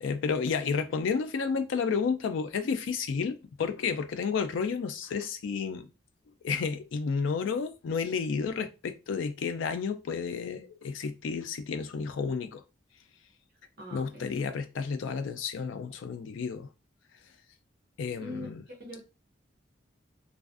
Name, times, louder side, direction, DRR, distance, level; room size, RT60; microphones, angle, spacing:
voice 1, 0.0-5.9 6.4-12.6 13.9-16.7 18.0-18.6, left 5 dB, 75° left, 0.3 m, -31 dB
voice 2, 13.8-14.3 18.2-18.5 18.8-19.0, left 1 dB, 50° right, 0.6 m, -41 dB
2.4 x 2.3 x 2.4 m
head